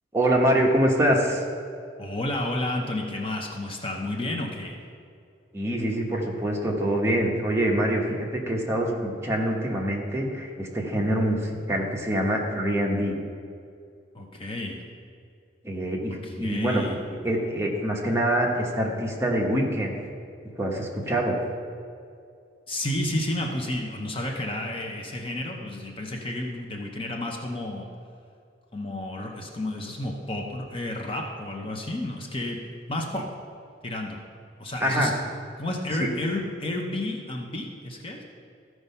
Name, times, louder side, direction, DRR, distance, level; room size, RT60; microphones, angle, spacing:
voice 1, 0.1-1.4 5.5-13.2 15.6-16.8 17.2-19.9 20.6-21.3 34.8-35.1, right 1 dB, 15° right, -2 dB, 1.2 m, -25 dB
voice 2, 2.0-4.9 14.1-14.8 16.2-17.0 22.7-27.9 28.7-32.6 32.9-33.3 33.8-34.2 34.6-35.1 35.6-38.2, left 1 dB, 30° left, 1 dB, 0.8 m, -31 dB
14.0 x 4.7 x 5.6 m, 2.4 s
head